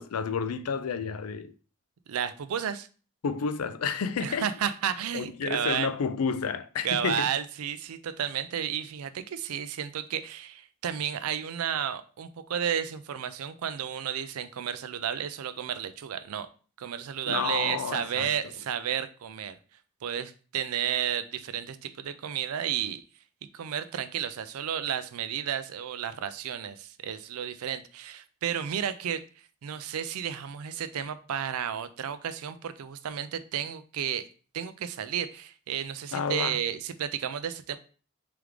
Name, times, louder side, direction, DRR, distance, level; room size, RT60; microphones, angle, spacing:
voice 1, 0.0-1.5 3.2-4.5 5.1-7.3 17.2-18.5 36.1-36.6, left 6 dB, 90° left, 0.4 m, -30 dB
voice 2, 2.1-2.9 4.2-5.9 6.8-16.5 16.8-19.6 20.0-23.0 23.5-29.2 29.6-34.3 34.5-37.8, right 9 dB, 85° right, 0.4 m, -32 dB
3.6 x 3.4 x 3.1 m
head